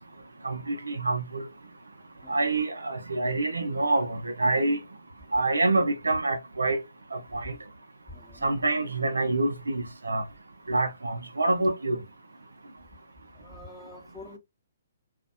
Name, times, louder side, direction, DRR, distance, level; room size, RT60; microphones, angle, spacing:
voice 1, 0.4-1.5 2.3-4.8 5.3-6.8 7.1-7.5 8.4-10.2 10.7-12.0, right 2 dB, 80° right, 0.5 m, -26 dB
voice 2, 8.1-8.5 13.3-14.4, left 2 dB, 10° left, 0.7 m, -46 dB
2.4 x 2.1 x 2.4 m
figure-of-eight pair, 125°, 0 cm